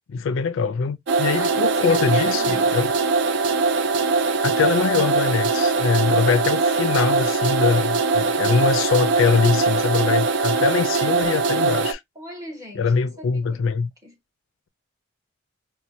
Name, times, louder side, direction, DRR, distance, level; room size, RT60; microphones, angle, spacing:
voice 1, 0.1-2.9 4.4-12.0 12.8-13.9, left 5 dB, 65° left, 0.4 m, -22 dB
sound 1, 1.1-11.9, right 4 dB, 60° right, 0.4 m, -21 dB
voice 2, 1.3-2.8 12.1-13.6 14.0-14.1, equal, 15° right, 1.1 m, -37 dB
4.2 x 2.1 x 2.6 m
head